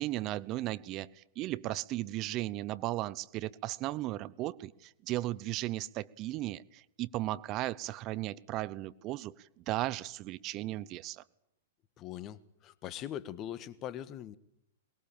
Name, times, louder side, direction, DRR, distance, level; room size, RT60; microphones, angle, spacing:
voice 1, 0.0-11.2, right 16 dB, 40° right, 0.9 m, -36 dB
voice 2, 12.0-14.4, left 11 dB, 35° left, 1.5 m, -41 dB
23.5 x 21.5 x 8.9 m
hypercardioid pair, 115°, 0 cm